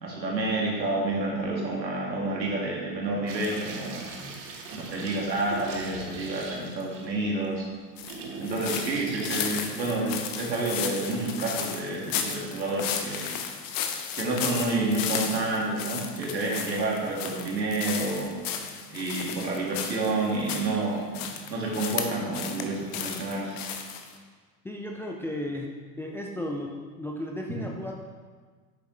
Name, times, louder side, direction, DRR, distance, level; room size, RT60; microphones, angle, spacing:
voice 1, 0.0-4.1 4.7-7.6 8.4-13.3 14.1-18.3 18.9-21.1 21.5-23.6, right 2 dB, 90° right, -2 dB, 2.1 m, -29 dB
sound 1, 3.3-10.9, right 3 dB, 60° right, 1.4 m, -41 dB
sound 2, 8.0-20.7 21.1-22.6 22.9-24.1, left 8 dB, 45° left, 1.0 m, -34 dB
voice 2, 24.6-25.7 26.0-26.7 27.0-27.9, left 1 dB, 5° left, 0 dB, 0.3 m, -34 dB
9.1 x 6.8 x 3.2 m, 1.5 s
hypercardioid pair, 90°, 50 cm